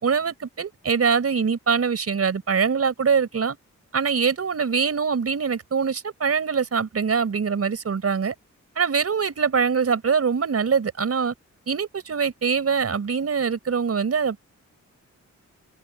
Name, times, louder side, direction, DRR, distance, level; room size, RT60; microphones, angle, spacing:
voice 1, 0.0-3.6 3.9-8.3 8.7-11.3 11.7-14.4, right 6 dB, 50° right, 5.0 m, -23 dB
wide cardioid pair, 165°, 30 cm